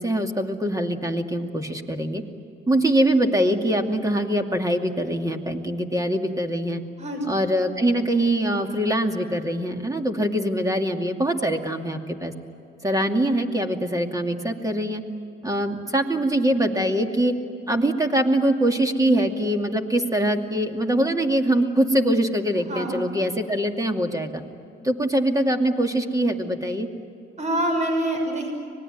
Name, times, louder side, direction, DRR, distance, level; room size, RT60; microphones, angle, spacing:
voice 1, 0.0-2.2 2.7-6.8 7.3-12.3 12.8-15.0 15.4-17.3 17.7-24.4 24.8-26.9, right 1 dB, 15° right, 4 dB, 2.5 m, -23 dB
voice 2, 22.7-23.1 27.4-28.5, right 1 dB, 35° right, 3 dB, 6.4 m, -25 dB
25.5 x 20.0 x 9.3 m, 2.7 s
cardioid pair, 90°, 20 cm